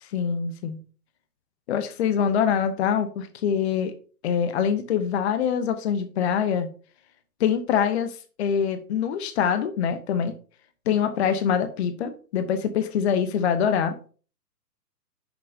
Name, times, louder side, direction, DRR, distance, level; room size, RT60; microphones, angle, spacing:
voice 1, 0.0-0.8 1.7-3.9 4.2-6.7 7.4-10.3 10.9-13.9, left 7 dB, 40° left, 9 dB, 0.8 m, -24 dB
10.0 x 6.1 x 2.7 m, 0.39 s
figure-of-eight pair, 120°, 49 cm